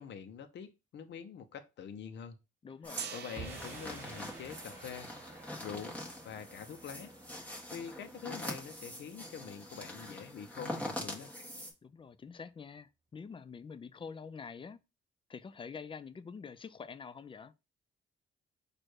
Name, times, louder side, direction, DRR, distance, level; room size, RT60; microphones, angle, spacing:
voice 1, 0.0-2.4 3.1-5.1 5.6-6.0 6.2-7.1 7.7-11.3, left 7 dB, 65° left, 0.8 m, -45 dB
voice 2, 2.6-3.1 11.8-14.8 15.3-17.5, left 5 dB, 25° left, 0.4 m, -46 dB
sound 1, 2.8-11.7, left 1 dB, 10° left, 1.4 m, -44 dB
Gong, 3.0-8.9, right 7 dB, 60° right, 0.7 m, -50 dB
sound 2, 3.4-9.7, right 3 dB, 10° right, 1.5 m, -52 dB
4.4 x 2.6 x 4.7 m
cardioid pair, 90°, 20 cm